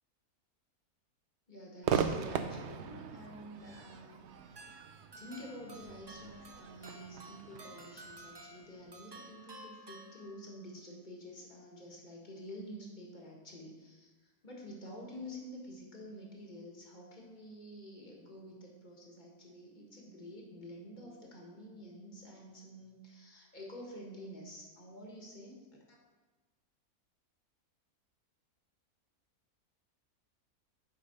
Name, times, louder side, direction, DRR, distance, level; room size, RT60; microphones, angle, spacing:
voice 1, 1.5-4.3 5.2-25.6, equal, 30° left, -1 dB, 1.6 m, -49 dB
Crowd / Fireworks, 1.8-9.2, right 7 dB, 65° right, 0.7 m, -39 dB
sound 1, 4.6-10.7, right 2 dB, 35° right, 0.4 m, -53 dB
8.3 x 5.6 x 5.4 m, 1.3 s
omnidirectional pair, 1.6 m